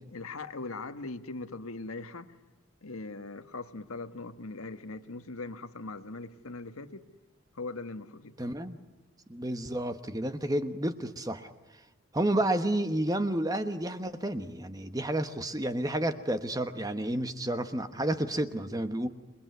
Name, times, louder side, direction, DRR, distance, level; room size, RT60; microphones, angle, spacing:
voice 1, 0.1-2.3 2.8-7.0 7.5-8.5, left 3 dB, 80° left, 9 dB, 1.5 m, -40 dB
voice 2, 8.4-8.8 9.3-11.5 12.1-19.1, right 1 dB, 15° right, 9 dB, 1.2 m, -30 dB
28.0 x 22.0 x 9.5 m, 1.2 s
head